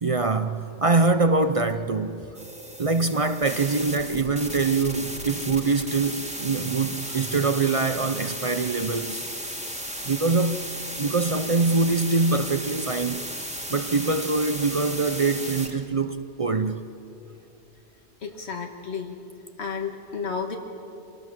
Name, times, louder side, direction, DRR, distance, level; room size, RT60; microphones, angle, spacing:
voice 1, 0.0-2.4 2.8-9.3 10.0-10.7 11.0-13.2 13.7-16.8, right 3 dB, 40° right, 0.6 m, -24 dB
sound 1, 2.3-15.8, equal, 5° right, 1.8 m, -35 dB
voice 2, 18.2-19.2 19.6-20.6, left 5 dB, 70° left, 1.8 m, -32 dB
25.0 x 18.5 x 7.6 m
omnidirectional pair, 1.2 m